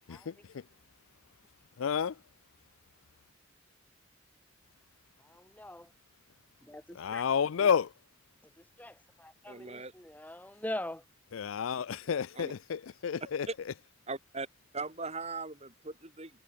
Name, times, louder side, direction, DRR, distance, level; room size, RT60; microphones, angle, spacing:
voice 1, 0.1-0.6 1.8-2.2 6.9-7.9 11.3-13.5, left 7 dB, 80° left, 0.4 m, -30 dB
voice 2, 5.2-5.9 6.6-7.2 8.6-11.0, left 1 dB, 10° left, 1.4 m, -42 dB
voice 3, 9.5-9.9 12.4-12.5 14.1-14.5 14.7-16.3, right 3 dB, 30° right, 3.8 m, -39 dB
head